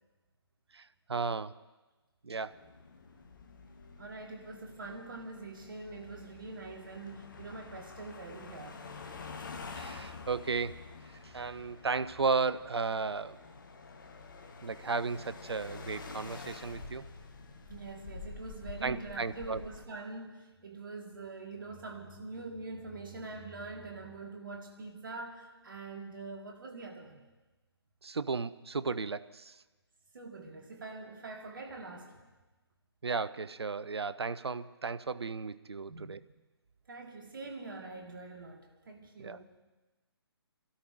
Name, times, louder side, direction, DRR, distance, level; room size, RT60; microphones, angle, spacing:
voice 1, 0.7-1.5 2.2-2.6 9.7-10.8 11.2-13.4 14.6-17.1 18.8-19.6 28.0-29.6 33.0-36.2 39.2-39.4, right 4 dB, 70° right, 15 dB, 0.5 m, -34 dB
sound 1, 2.3-19.9, left 4 dB, 50° left, 1.1 m, -48 dB
voice 2, 4.0-8.8 17.7-27.2 30.1-32.2 35.9-36.2 36.9-39.5, right 3 dB, 50° right, 2 dB, 1.6 m, -44 dB
29.5 x 13.0 x 2.5 m, 1.2 s
figure-of-eight pair, 140°, 14 cm